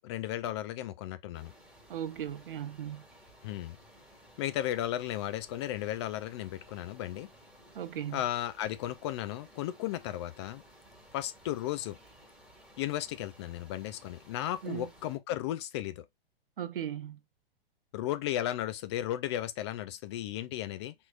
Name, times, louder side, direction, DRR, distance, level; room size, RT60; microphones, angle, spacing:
voice 1, 0.0-1.5 3.4-3.8 4.4-7.3 8.1-10.6 11.1-12.0 12.8-16.0 17.9-20.9, left 13 dB, 30° left, 0.4 m, -35 dB
sound 1, 1.3-15.2, equal, 5° right, 1.8 m, -57 dB
voice 2, 1.9-3.1 7.7-8.3 14.6-14.9 16.6-17.2, right 10 dB, 65° right, 0.8 m, -37 dB
5.8 x 3.8 x 2.4 m
figure-of-eight pair, 115°, 30 cm